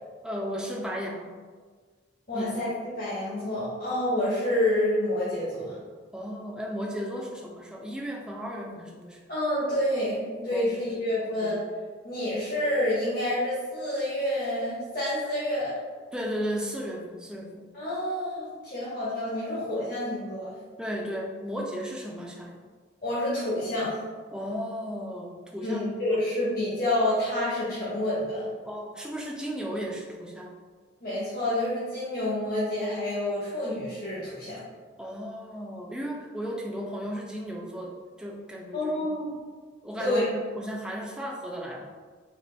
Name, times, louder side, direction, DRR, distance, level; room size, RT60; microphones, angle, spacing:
voice 1, 0.2-1.4 2.3-2.7 6.1-9.2 10.5-10.8 11.2-11.6 16.1-17.7 20.8-22.6 24.3-25.8 26.1-26.2 28.7-30.5 35.0-38.9 39.8-41.9, equal, 5° right, -1 dB, 0.3 m, -35 dB
voice 2, 2.3-2.7 3.0-5.8 9.3-11.6 12.0-15.8 17.7-20.5 23.0-24.0 25.6-28.4 31.0-34.6 38.7-39.3 40.0-40.2, left 1 dB, 50° left, -10 dB, 0.9 m, -28 dB
4.0 x 2.2 x 3.2 m, 1.5 s
head